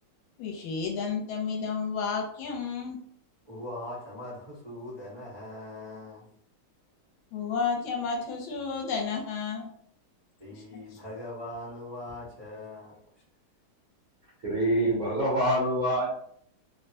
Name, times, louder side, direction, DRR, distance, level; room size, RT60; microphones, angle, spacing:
voice 1, 0.4-3.0 7.3-9.7, left 5 dB, 80° left, 1 dB, 1.4 m, -31 dB
voice 2, 3.4-6.2 10.4-12.9, left 1 dB, 30° right, -9 dB, 0.4 m, -41 dB
voice 3, 14.4-16.1, right 1 dB, 55° right, -7 dB, 1.0 m, -25 dB
3.3 x 2.1 x 2.7 m, 0.66 s
omnidirectional pair, 2.3 m